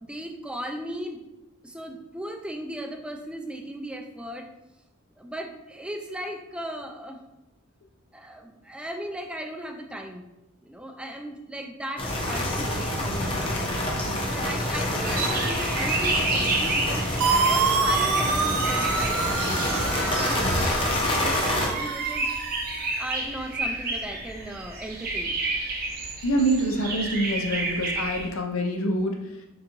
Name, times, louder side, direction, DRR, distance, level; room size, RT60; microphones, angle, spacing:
voice 1, 0.0-1.2 1.6-4.5 5.2-7.2 8.1-10.2 10.7-13.7 14.3-17.1 17.5-22.3 23.0-25.4, right 1 dB, 5° right, 3 dB, 0.3 m, -37 dB
sound 1, 12.0-21.7, left 1 dB, 25° left, 0.7 m, -27 dB
sound 2, 15.0-28.3, right 3 dB, 45° right, 0.7 m, -31 dB
sound 3, 17.2-23.0, right 5 dB, 90° right, 0.5 m, -27 dB
voice 2, 26.2-29.1, right 1 dB, 65° left, 2 dB, 0.6 m, -25 dB
3.8 x 3.5 x 2.9 m, 0.95 s
head